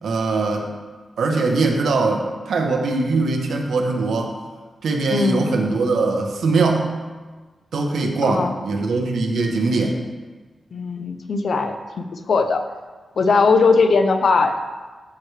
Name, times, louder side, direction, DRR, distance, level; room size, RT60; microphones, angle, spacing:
voice 1, 0.0-0.7 1.2-4.3 4.8-6.9 7.7-10.0, right 3 dB, 90° right, 2 dB, 1.0 m, -21 dB
voice 2, 5.1-5.5 8.2-8.5 10.7-12.6 13.2-14.6, left 4 dB, 55° left, 7 dB, 0.6 m, -19 dB
13.0 x 4.8 x 3.3 m, 1.3 s
wide cardioid pair, 180°, 0 cm